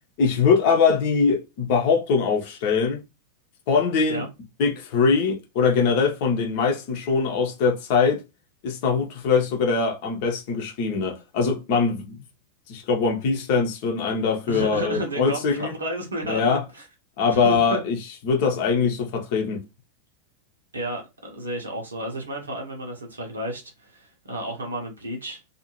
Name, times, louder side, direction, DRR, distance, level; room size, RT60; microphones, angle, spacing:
voice 1, 0.2-3.0 3.7-4.2 4.6-8.2 8.6-12.2 12.7-15.7 16.3-16.6 17.2-18.0 18.2-19.6, left 5 dB, 50° left, 0.7 m, -22 dB
voice 2, 14.5-16.9 17.3-17.8 20.7-25.4, right 1 dB, 75° right, 0.8 m, -32 dB
2.6 x 2.4 x 2.9 m
figure-of-eight pair, 90°, 0 cm